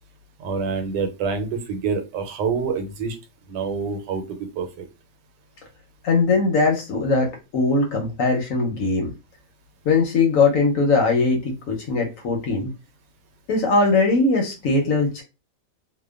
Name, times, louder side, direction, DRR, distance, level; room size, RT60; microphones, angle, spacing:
voice 1, 0.4-3.2 3.5-4.9, right 5 dB, 90° right, 7 dB, 1.3 m, -27 dB
voice 2, 6.0-9.1 9.9-12.7 13.5-15.2, left 3 dB, 65° left, 1 dB, 0.9 m, -20 dB
2.8 x 2.2 x 2.2 m, 0.26 s
omnidirectional pair, 1.8 m